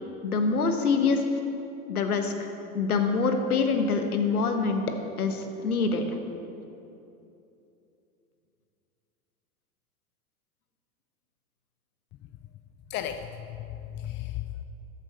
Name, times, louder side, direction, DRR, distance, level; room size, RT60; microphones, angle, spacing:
voice 1, 0.2-1.2 1.9-2.3 2.7-4.8 5.2-6.0, left 4 dB, 90° left, 6 dB, 1.2 m, -25 dB
voice 2, 12.9-14.6, left 11 dB, 25° left, 8 dB, 0.4 m, -35 dB
14.0 x 7.3 x 5.1 m, 2.8 s
hypercardioid pair, 95°, 43 cm